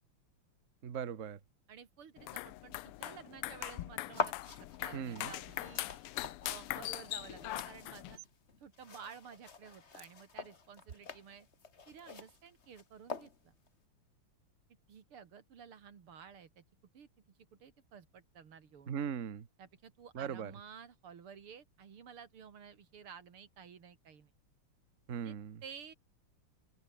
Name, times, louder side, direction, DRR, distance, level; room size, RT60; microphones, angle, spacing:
voice 1, 0.8-1.4 4.9-5.3 18.9-19.5 20.1-20.5 25.1-25.6, right 7 dB, 40° right, 1.3 m, -39 dB
voice 2, 1.7-4.3 4.6-5.9 6.4-8.2 8.6-11.5 11.9-13.5 14.9-16.6 16.9-17.1 17.6-18.9 19.6-24.3 25.2-25.4 25.6-25.9, right 7 dB, 75° right, 3.0 m, -53 dB
sound 1, 2.2-8.2, left 17 dB, 90° left, 1.6 m, -42 dB
sound 2, 4.1-13.7, left 5 dB, 35° left, 1.8 m, -45 dB
open air
omnidirectional pair, 2.4 m